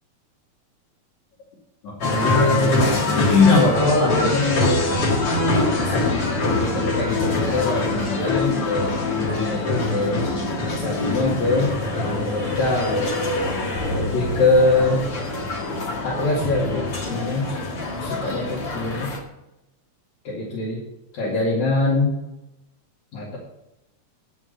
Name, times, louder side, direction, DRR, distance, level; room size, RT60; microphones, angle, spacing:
voice 1, 1.8-2.9 3.1-4.8 5.8-10.2 10.7-13.0 13.9-15.0 16.0-17.6 17.9-19.1 20.3-20.8 21.1-22.2 23.1-23.3, left 2 dB, 70° left, -5 dB, 3.6 m, -23 dB
sound 1, 2.0-19.2, left 2 dB, 50° left, 2.6 m, -24 dB
sound 2, 13.8-16.4, left 1 dB, 90° left, 3.3 m, -33 dB
11.0 x 6.5 x 6.6 m, 0.89 s
omnidirectional pair, 3.3 m